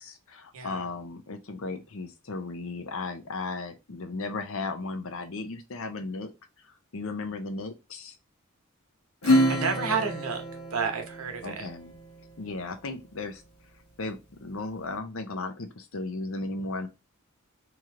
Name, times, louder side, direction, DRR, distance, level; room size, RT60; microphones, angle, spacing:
voice 1, 0.0-6.3 6.9-8.2 11.4-11.9 12.4-13.4 14.0-16.9, left 3 dB, 70° left, 0.7 m, -35 dB
voice 2, 0.5-0.9 9.2-10.4 10.7-11.7, right 5 dB, 80° right, 1.0 m, -31 dB
Acoustic guitar / Strum, 9.2-12.1, equal, 85° left, 1.2 m, -27 dB
3.0 x 3.0 x 3.7 m
head